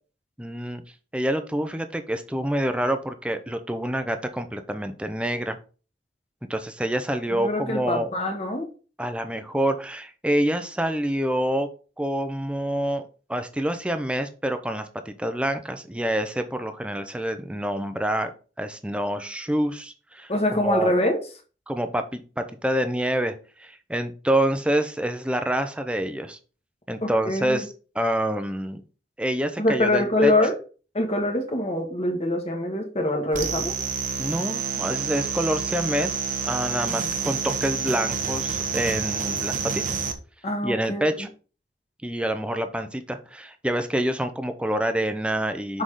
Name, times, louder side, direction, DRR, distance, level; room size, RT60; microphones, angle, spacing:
voice 1, 0.4-0.8 1.1-5.6 6.5-8.1 9.0-11.7 12.0-13.0 13.3-18.3 18.6-20.9 21.7-26.4 26.9-28.8 29.2-30.3 34.2-36.2 36.4-40.1 40.6-41.3 42.0-45.8, right 1 dB, 5° right, 8 dB, 0.7 m, -27 dB
voice 2, 7.3-8.7 20.3-21.2 27.0-27.6 29.6-30.6 30.9-33.7 40.4-41.3 45.7-45.8, left 1 dB, 35° left, 3 dB, 1.5 m, -24 dB
sound 1, 33.3-40.1, right 6 dB, 45° right, 0.9 m, -28 dB
6.3 x 4.9 x 3.8 m, 0.36 s
head